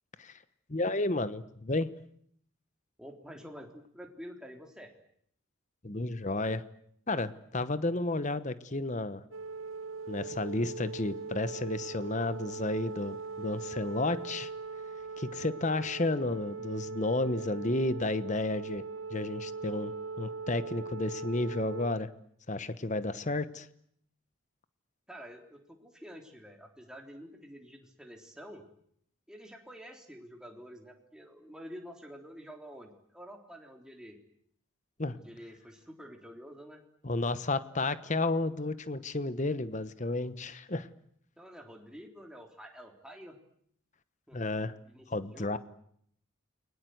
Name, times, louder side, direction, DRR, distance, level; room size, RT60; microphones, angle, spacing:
voice 1, 0.7-1.9 5.8-6.6 7.1-9.2 10.1-14.5 15.2-18.8 19.1-22.1 22.5-23.7 35.0-35.2 37.0-40.9 44.3-44.7 45.1-45.6, left 2 dB, 35° left, 13 dB, 1.1 m, -32 dB
voice 2, 3.0-4.9 25.1-28.6 29.3-34.2 35.1-36.8 41.4-43.4 44.3-44.4 44.8-45.1 45.3-45.6, equal, 5° right, 2 dB, 3.7 m, -48 dB
sound 1, 9.3-21.9, right 4 dB, 70° right, 1.2 m, -40 dB
29.5 x 22.5 x 8.0 m, 0.68 s
head